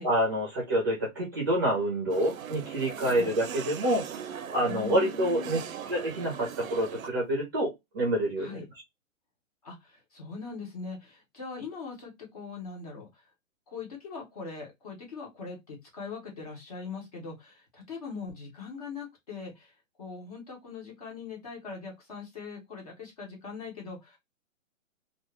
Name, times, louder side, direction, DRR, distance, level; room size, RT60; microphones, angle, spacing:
voice 1, 0.0-4.0 4.5-5.6 5.9-8.6, right 1 dB, 15° right, -2 dB, 0.7 m, -27 dB
sound 1, 2.1-7.1, right 8 dB, 85° right, 0.7 m, -40 dB
voice 2, 4.7-5.6 8.4-8.6 9.6-13.2 13.7-24.2, left 5 dB, 30° left, 0 dB, 0.9 m, -41 dB
2.5 x 2.3 x 3.1 m, 0.18 s
hypercardioid pair, 170°, 40 cm